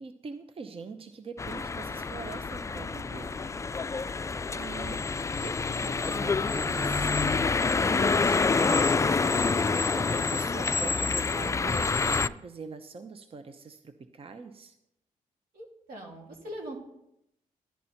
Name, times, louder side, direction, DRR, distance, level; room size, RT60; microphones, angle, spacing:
voice 1, 0.0-3.4 4.5-5.0 5.4-14.8, right 4 dB, 40° right, 8 dB, 0.8 m, -43 dB
sound 1, 1.4-12.3, left 4 dB, 20° left, 0.3 m, -27 dB
sound 2, 3.5-9.0, left 2 dB, ahead, 1.2 m, -41 dB
voice 2, 15.5-16.8, right 1 dB, 90° right, 0 dB, 3.0 m, -41 dB
11.5 x 11.0 x 4.4 m, 0.81 s
cardioid pair, 90°, 14 cm